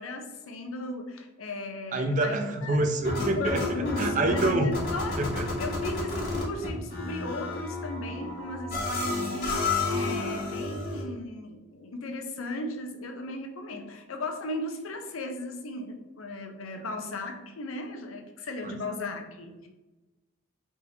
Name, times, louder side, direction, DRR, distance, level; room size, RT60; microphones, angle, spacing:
voice 1, 0.0-2.8 3.1-19.7, left 2 dB, 85° left, 4 dB, 0.6 m, -36 dB
voice 2, 1.9-3.6 4.0-4.7 5.2-5.5 18.6-18.7, right 2 dB, 35° right, 5 dB, 0.4 m, -26 dB
sound 1, 2.7-11.0, left 3 dB, 50° left, 1.2 m, -31 dB
3.6 x 2.8 x 4.2 m, 1.1 s
head